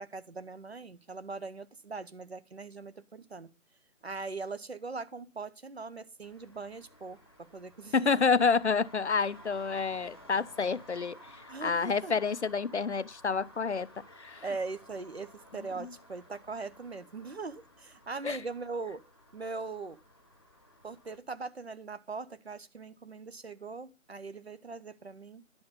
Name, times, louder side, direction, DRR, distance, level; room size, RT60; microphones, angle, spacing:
voice 1, 0.0-3.5 4.0-8.2 11.5-12.1 14.4-19.0 19.3-20.0 20.8-25.6, right 4 dB, 55° right, 0.9 m, -41 dB
Traffic noise roadway noise, 6.2-21.2, equal, 20° left, 1.0 m, -55 dB
voice 2, 7.9-13.9 14.2-14.4 15.8-15.9 18.2-18.4, left 5 dB, 60° left, 0.6 m, -29 dB
10.5 x 6.9 x 5.1 m
figure-of-eight pair, 175°, 39 cm